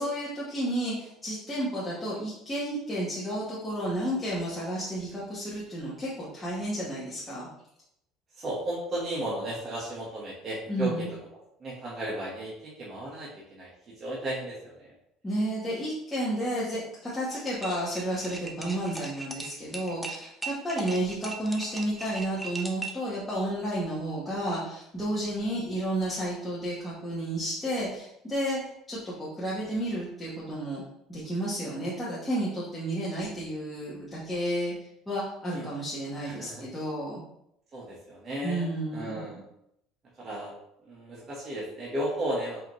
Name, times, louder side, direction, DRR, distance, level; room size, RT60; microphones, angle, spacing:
voice 1, 0.0-7.5 10.7-11.1 15.2-28.6 28.9-30.8 31.1-34.7 35.1-37.2 38.4-39.2, right 1 dB, 15° left, -8 dB, 1.1 m, -31 dB
voice 2, 8.3-11.1 11.6-13.7 14.0-14.9 35.5-35.7 36.2-36.6 37.7-39.4 40.2-40.5 40.8-42.6, right 1 dB, 30° right, -7 dB, 1.2 m, -34 dB
sound 1, 17.3-23.1, right 3 dB, 5° right, 0.6 m, -39 dB
5.0 x 2.9 x 3.0 m, 0.79 s
cardioid pair, 115°, 0 cm